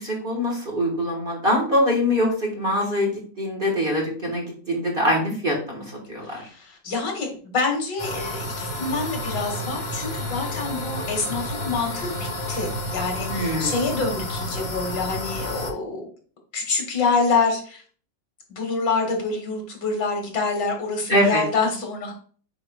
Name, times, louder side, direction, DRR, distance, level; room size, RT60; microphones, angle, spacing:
voice 1, 0.0-6.4 13.3-13.9 21.1-21.4, left 1 dB, 30° right, 0 dB, 1.5 m, -23 dB
voice 2, 6.3-16.1 16.5-17.8 18.5-22.1, left 4 dB, 70° left, 2 dB, 2.2 m, -26 dB
sound 1, 8.0-15.7, left 1 dB, 25° left, 0.7 m, -30 dB
8.7 x 4.8 x 2.3 m, 0.43 s
omnidirectional pair, 2.0 m